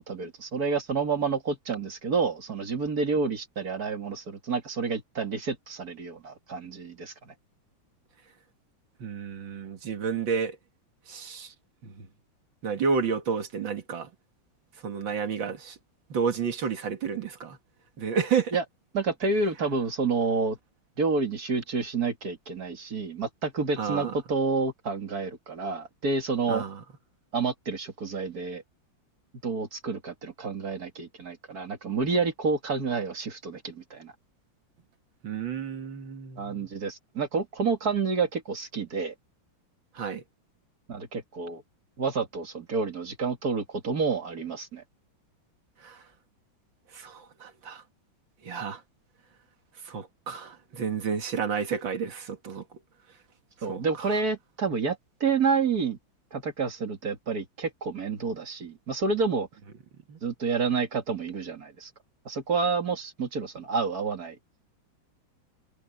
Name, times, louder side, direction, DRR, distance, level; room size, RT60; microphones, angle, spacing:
voice 1, 0.0-7.3 18.5-18.6 18.9-20.6 21.0-26.6 27.3-28.6 29.4-34.1 36.4-39.1 40.9-41.6 42.0-44.8 53.6-56.0 56.3-59.5 60.2-61.9 62.3-64.4, right 4 dB, 50° right, 2.7 m, -29 dB
voice 2, 9.0-10.6 11.1-11.5 11.8-12.1 12.6-14.1 14.8-15.8 16.1-17.6 18.0-18.6 23.8-24.1 26.5-26.8 35.2-36.7 39.9-40.2 45.8-46.0 46.9-47.8 48.4-48.8 49.8-52.6 53.7-54.1 60.1-60.2, right 6 dB, 75° right, 2.5 m, -31 dB
omnidirectional pair, 2.1 m